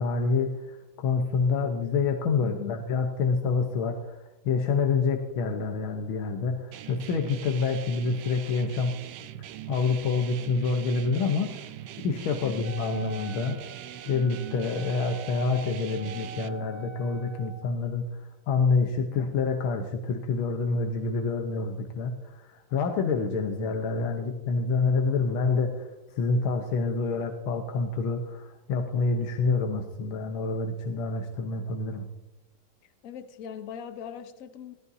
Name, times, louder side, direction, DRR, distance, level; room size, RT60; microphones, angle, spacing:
voice 1, 0.0-8.9 9.7-11.7 12.0-13.6 14.1-25.9 26.2-32.1, left 4 dB, 75° left, 4 dB, 1.7 m, -27 dB
voice 2, 2.4-2.8 12.4-12.7 33.0-34.7, left 9 dB, 55° left, 10 dB, 1.0 m, -40 dB
sound 1, 6.7-16.5, right 12 dB, 75° right, 1.0 m, -42 dB
Wind instrument woodwind instrument, 12.6-17.7, right 3 dB, 45° right, 0.6 m, -45 dB
17.5 x 14.0 x 2.7 m, 0.99 s
omnidirectional pair, 2.3 m